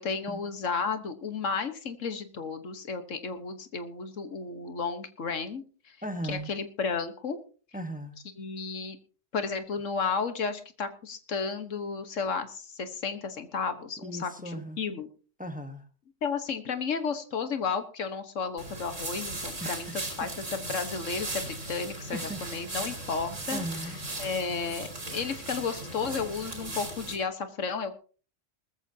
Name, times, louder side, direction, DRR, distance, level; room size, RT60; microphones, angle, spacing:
voice 1, 0.0-6.0 6.2-7.4 8.4-9.0 9.3-15.1 16.2-19.9 20.2-23.6 24.2-27.9, left 5 dB, 85° left, 9 dB, 1.7 m, -33 dB
voice 2, 6.0-6.5 7.7-8.2 14.0-14.8 15.4-15.8 19.6-20.0 22.1-22.4 23.5-24.0, right 1 dB, 5° right, 8 dB, 1.2 m, -37 dB
sound 1, 18.6-27.2, right 2 dB, 80° right, 4.2 m, -37 dB
19.5 x 14.5 x 2.8 m, 0.38 s
omnidirectional pair, 1.3 m